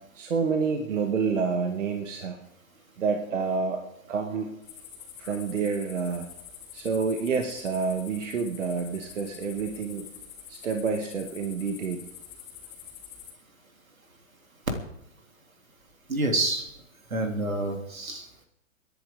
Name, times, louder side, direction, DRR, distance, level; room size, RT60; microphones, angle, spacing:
voice 1, 0.2-2.4 3.0-3.8 4.1-4.5 5.2-6.3 6.7-10.0 10.5-12.0, right 5 dB, 65° right, 4 dB, 1.8 m, -28 dB
sound 1, 4.6-13.3, left 9 dB, 25° left, 3.2 m, -46 dB
voice 2, 16.1-16.6 17.1-18.4, right 2 dB, 85° right, 3 dB, 3.2 m, -28 dB
27.5 x 10.5 x 3.8 m, 0.78 s
figure-of-eight pair, 125°, 40 cm